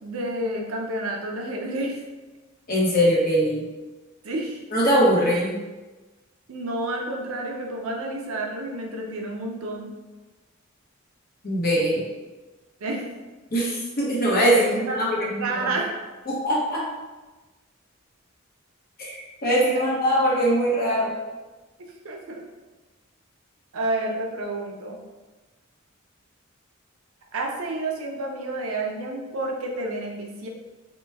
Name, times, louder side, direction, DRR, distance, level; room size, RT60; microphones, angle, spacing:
voice 1, 0.0-2.0 4.2-4.6 6.5-9.9 12.8-13.0 14.5-15.9 22.0-22.4 23.7-25.0 27.3-30.5, right 2 dB, 85° right, 0 dB, 0.6 m, -30 dB
voice 2, 2.7-3.6 4.7-5.6 11.4-12.0 13.5-15.4 16.3-16.8 19.0-19.1 19.4-21.1, equal, 45° left, -5 dB, 0.9 m, -21 dB
2.9 x 2.3 x 3.3 m, 1.2 s
head